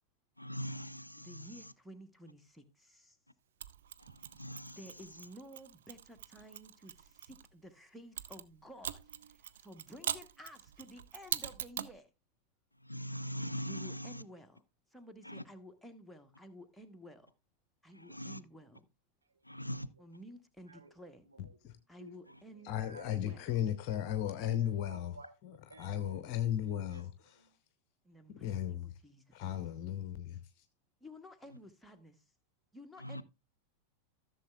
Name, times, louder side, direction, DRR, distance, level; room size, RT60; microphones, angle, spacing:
voice 1, 0.4-1.5 4.0-4.8 12.8-14.2 15.3-15.4 17.9-18.4 19.5-19.9 33.0-33.2, equal, 85° left, 0.4 m, -41 dB
voice 2, 1.2-3.2 4.8-12.1 13.7-14.6 14.9-17.3 17.8-18.9 20.0-21.2 21.9-22.7 23.1-23.6 28.0-29.4 31.0-32.2 32.7-33.2, equal, ahead, 1.1 m, -53 dB
Mechanisms, 3.6-7.5 8.2-12.0, right 10 dB, 60° right, 0.4 m, -43 dB
voice 3, 20.7-21.6 22.0-22.2 22.5-24.0 24.2-26.3 26.6-27.6, right 3 dB, 80° right, 1.1 m, -56 dB
voice 4, 21.4-21.7 22.6-25.1 25.8-27.1 28.3-28.9 29.3-30.6, left 11 dB, 45° left, 0.7 m, -35 dB
14.5 x 6.7 x 2.3 m
figure-of-eight pair, 90°, 0 cm